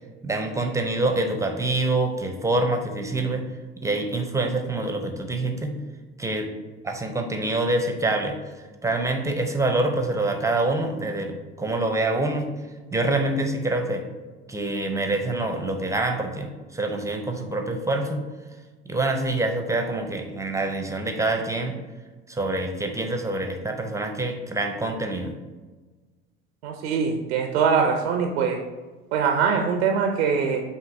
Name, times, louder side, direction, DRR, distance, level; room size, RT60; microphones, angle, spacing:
voice 1, 0.2-3.4 3.8-5.7 6.2-6.5 6.8-8.4 8.8-12.5 12.9-14.0 14.5-18.2 18.9-21.8 22.3-25.3, right 2 dB, 10° right, 4 dB, 0.6 m, -26 dB
voice 2, 26.6-28.6 29.1-30.6, right 6 dB, 85° right, 3 dB, 0.6 m, -22 dB
7.6 x 2.7 x 2.6 m, 1.3 s
hypercardioid pair, 80°, 31 cm